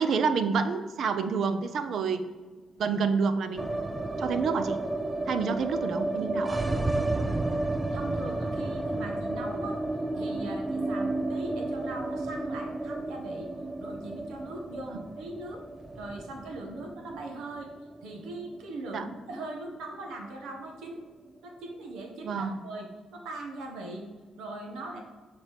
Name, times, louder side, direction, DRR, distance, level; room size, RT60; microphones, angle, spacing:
voice 1, 0.0-2.3 2.8-3.8 4.2-4.8 5.3-6.6 18.9-19.0 22.2-22.6, right 5 dB, 65° right, 10 dB, 0.7 m, -28 dB
sound 1, 3.6-19.7 19.9-20.0 20.3-21.0, right 2 dB, 10° right, 0.5 m, -32 dB
voice 2, 7.9-9.8 10.1-13.5 13.8-15.6 16.0-17.7 18.0-21.0 21.4-24.1 24.4-25.0, right 2 dB, 85° right, 2 dB, 1.5 m, -40 dB
7.2 x 4.6 x 5.0 m, 1.4 s
cardioid pair, 90°, 0 cm